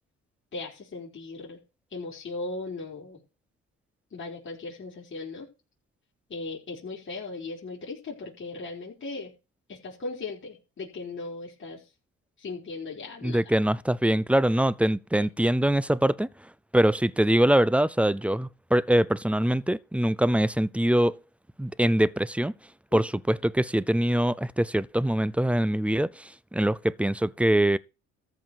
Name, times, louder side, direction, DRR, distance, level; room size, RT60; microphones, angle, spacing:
voice 1, 0.5-1.6 1.9-3.2 4.1-5.5 6.3-9.3 9.7-11.8 12.4-13.4 15.1-15.3 22.9-23.0, left 3 dB, 40° left, 4.6 m, -37 dB
voice 2, 13.2-16.3 16.7-21.2 21.6-22.5 22.9-27.8, right 1 dB, 5° right, 0.6 m, -23 dB
14.0 x 4.7 x 6.9 m
cardioid pair, 90°, 30 cm